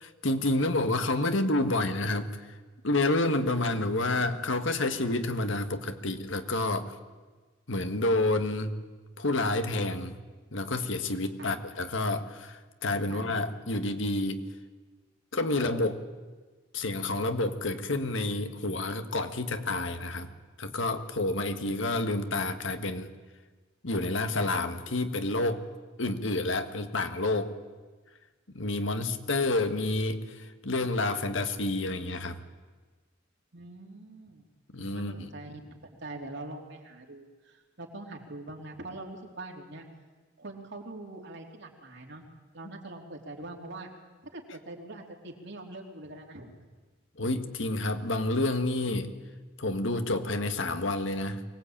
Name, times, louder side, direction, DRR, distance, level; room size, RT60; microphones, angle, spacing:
voice 1, 0.2-2.3 2.8-6.9 7.7-8.7 9.2-10.2 10.5-14.4 15.3-16.0 16.7-20.3 20.6-23.1 23.8-25.6 26.0-27.5 28.5-32.4 34.7-35.3 47.2-49.1 49.6-51.4, left 2 dB, 70° left, 8 dB, 1.6 m, -29 dB
voice 2, 13.1-13.4 33.5-34.5 34.9-35.6 36.0-39.9 40.4-42.2 42.5-43.9 44.3-46.5, right 2 dB, 60° right, 2 dB, 3.4 m, -43 dB
24.0 x 19.0 x 8.8 m, 1.3 s
head